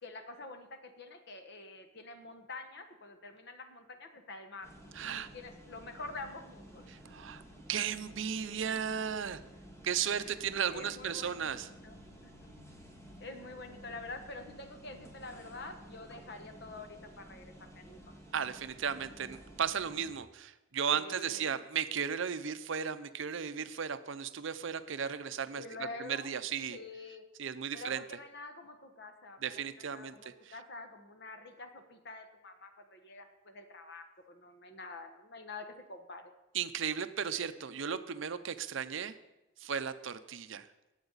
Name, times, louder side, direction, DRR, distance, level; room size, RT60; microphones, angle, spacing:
voice 1, 0.0-4.7 5.0-6.9 10.1-12.0 12.2-12.5 13.2-18.1 20.9-21.5 25.6-26.3 26.7-27.3 27.7-36.3, left 3 dB, 50° left, 7 dB, 1.2 m, -47 dB
sound 1, 4.6-20.1, equal, 15° left, 1.6 m, -53 dB
voice 2, 5.0-5.3 6.9-7.4 7.7-9.4 9.8-11.7 18.3-25.6 26.0-26.8 27.4-28.0 29.4-30.5 36.5-39.1 39.6-40.7, right 7 dB, 60° right, 12 dB, 0.5 m, -35 dB
18.5 x 8.0 x 4.0 m, 1.0 s
head